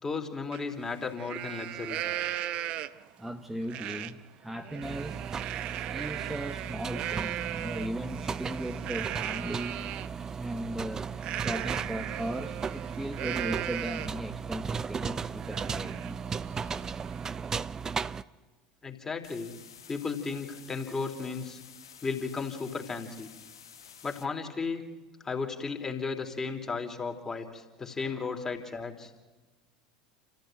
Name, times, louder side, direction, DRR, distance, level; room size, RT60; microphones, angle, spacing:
voice 1, 0.0-2.0 18.8-19.5 19.9-21.6 22.0-23.3 24.0-24.8 25.2-29.1, left 4 dB, 20° left, 4 dB, 3.6 m, -34 dB
Livestock farm animals working animals, 0.5-0.6 1.0-3.1 3.7-4.1 4.5-10.1 11.2-14.3 14.7-14.8 15.2-17.5, right 13 dB, 50° right, 1.0 m, -37 dB
voice 2, 3.2-5.2 5.9-9.8 10.3-11.2 11.4-16.2 28.3-28.4, equal, 5° right, 4 dB, 1.3 m, -37 dB
sound 1, 4.8-18.2, right 6 dB, 25° right, 0.7 m, -36 dB
sound 2, 19.2-24.2, left 8 dB, 75° left, 1.6 m, -51 dB
28.5 x 15.0 x 9.2 m, 1.3 s
figure-of-eight pair, 75°, 2 cm